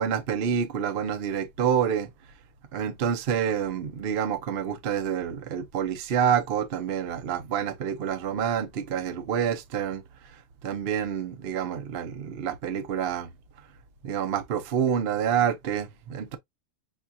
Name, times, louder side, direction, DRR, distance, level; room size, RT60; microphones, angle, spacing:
voice 1, 0.0-2.1 2.7-10.0 10.6-13.3 14.0-16.4, right 8 dB, 60° right, 0.6 m, -27 dB
6.8 x 2.4 x 2.7 m
omnidirectional pair, 2.1 m